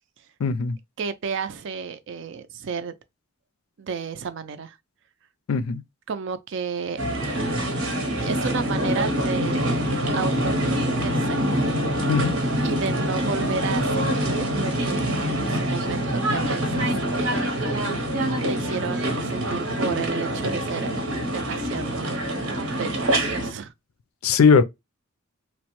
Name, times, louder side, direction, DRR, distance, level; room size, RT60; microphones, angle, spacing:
voice 1, 0.4-0.8 5.5-5.8 12.1-12.3 24.2-24.6, left 5 dB, 80° left, 0.4 m, -19 dB
voice 2, 1.0-3.0 3.8-4.8 6.1-7.0 8.2-9.7 10.1-11.4 12.6-17.4 18.5-20.9 21.3-23.7, right 5 dB, 60° right, 0.4 m, -32 dB
sound 1, 7.0-23.5, equal, 85° right, 0.9 m, -25 dB
2.9 x 2.1 x 2.9 m
head